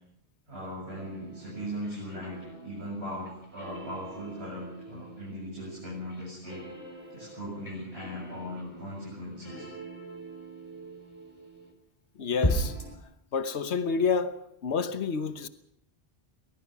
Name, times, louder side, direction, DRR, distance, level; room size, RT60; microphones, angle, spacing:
voice 1, 0.5-6.7 7.1-9.7, equal, 70° right, 7.8 m, -39 dB
sound 1, 0.9-11.7 12.4-13.0, equal, 30° left, 3.9 m, -38 dB
voice 2, 12.2-12.8 13.3-14.4 14.6-15.5, left 5 dB, 85° left, 1.4 m, -28 dB
23.0 x 20.0 x 6.0 m
omnidirectional pair, 1.1 m